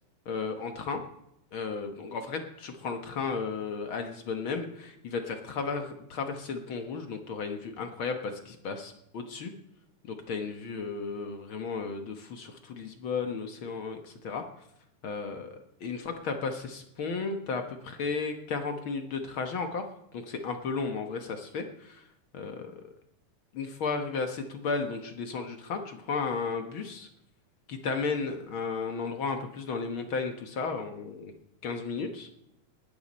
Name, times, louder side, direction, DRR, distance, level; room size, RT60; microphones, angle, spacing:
voice 1, 0.2-1.0 1.5-9.5 10.1-14.4 15.0-19.8 20.1-22.0 22.3-22.8 23.5-27.1 27.7-31.3 31.6-32.3, left 4 dB, 55° left, 5 dB, 1.5 m, -34 dB
19.0 x 13.0 x 4.3 m, 0.78 s
omnidirectional pair, 3.7 m